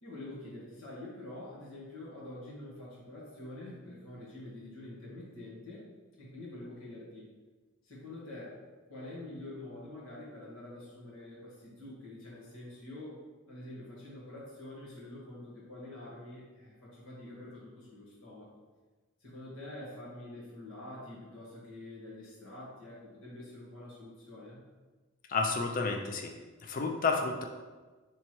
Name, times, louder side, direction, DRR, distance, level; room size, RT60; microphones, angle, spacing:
voice 1, 0.0-5.9 6.2-7.3 7.8-8.6 8.9-13.2 13.5-18.5 19.2-24.6, left 1 dB, 75° left, -7 dB, 1.5 m, -46 dB
voice 2, 25.3-26.3 26.6-27.4, left 4 dB, 40° left, 3 dB, 0.4 m, -30 dB
3.4 x 3.0 x 4.4 m, 1.3 s
head